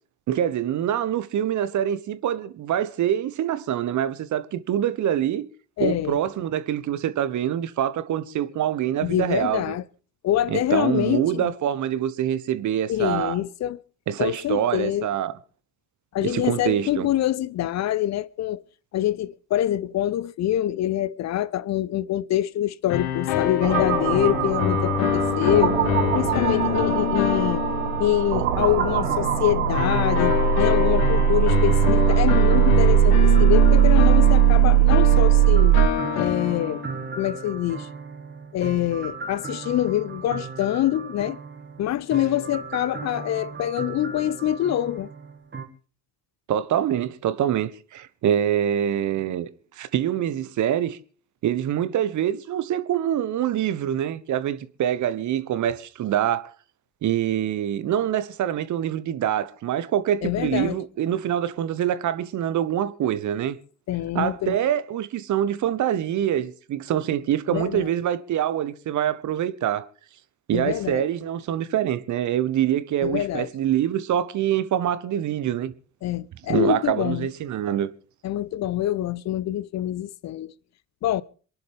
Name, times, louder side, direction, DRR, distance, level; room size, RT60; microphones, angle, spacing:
voice 1, 0.3-5.5 5.8-9.8 10.5-13.4 14.1-15.3 16.2-17.1 46.5-49.5 49.8-51.0 51.4-56.5 57.0-63.6 64.1-69.9 70.5-75.7 76.5-77.9, right 10 dB, 50° right, 1.3 m, -25 dB
voice 2, 5.8-6.2 9.0-9.8 10.2-11.5 12.9-13.8 14.2-15.1 16.1-18.6 18.9-25.8 26.1-27.7 28.0-35.8 36.2-36.8 37.2-37.9 38.5-41.4 41.8-45.1 60.2-60.8 63.9-64.6 67.5-67.9 70.5-71.1 73.0-73.5 76.0-77.3 78.2-80.5 81.0-81.2, left 12 dB, 45° left, 0.7 m, -25 dB
sound 1, 22.9-28.7 29.7-37.1, left 10 dB, 65° left, 1.6 m, -26 dB
sound 2, 23.6-35.9, right 12 dB, 75° right, 0.9 m, -19 dB
sound 3, 28.5-45.6, right 4 dB, 30° right, 2.2 m, -37 dB
27.5 x 11.0 x 3.6 m
figure-of-eight pair, 45°, 38 cm